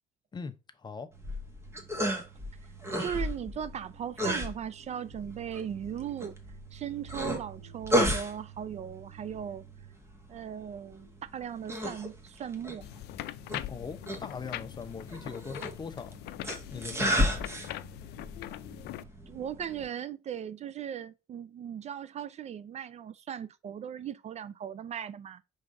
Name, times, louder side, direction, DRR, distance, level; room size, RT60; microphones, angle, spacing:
voice 1, 0.3-1.1 13.7-16.2 16.7-17.5, left 5 dB, 25° left, 0.7 m, -41 dB
sound 1, 1.1-19.9, equal, 15° right, 1.4 m, -34 dB
voice 2, 3.0-6.4 6.7-9.6 10.3-12.9 19.3-25.4, right 9 dB, 40° right, 0.4 m, -38 dB
sound 2, 12.8-19.0, left 15 dB, 75° left, 0.4 m, -42 dB
5.1 x 3.6 x 5.3 m
cardioid pair, 110°, 17 cm